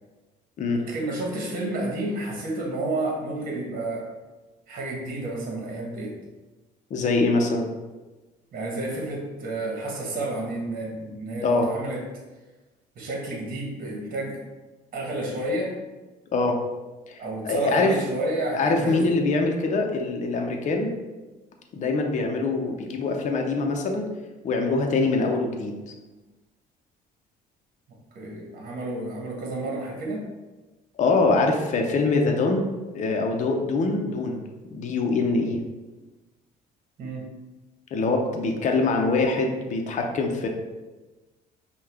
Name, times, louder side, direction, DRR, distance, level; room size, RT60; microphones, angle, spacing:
voice 1, 0.9-4.1 4.7-6.2 8.5-12.0 12.9-14.4 14.9-15.8 17.2-19.1 27.9-30.2 37.0-37.3, right 2 dB, 55° right, -1 dB, 1.3 m, -30 dB
voice 2, 6.9-7.7 11.4-11.7 16.3-16.6 17.1-17.2 17.4-17.9 18.5-20.9 21.7-24.1 24.4-25.8 31.0-32.6 32.9-34.4 34.7-35.6 37.9-40.5, left 3 dB, 45° left, 2 dB, 0.7 m, -23 dB
5.5 x 2.4 x 3.5 m, 1.2 s
cardioid pair, 110°, 17 cm